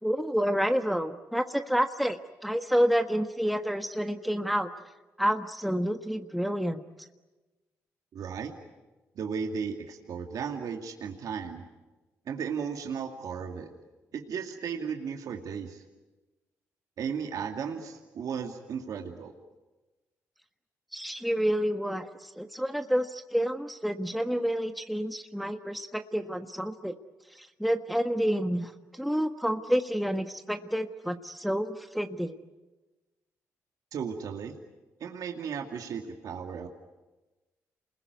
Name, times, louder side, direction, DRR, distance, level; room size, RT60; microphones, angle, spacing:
voice 1, 0.0-4.7 5.2-6.8 20.9-26.9 27.4-32.4, equal, ahead, 6 dB, 1.4 m, -29 dB
voice 2, 8.1-8.5 9.2-11.6 12.3-13.7 14.1-15.8 17.0-19.3 33.9-34.6 35.0-36.7, right 6 dB, 70° right, 3 dB, 2.4 m, -35 dB
29.0 x 21.0 x 9.5 m, 1.2 s
cardioid pair, 70°, 6 cm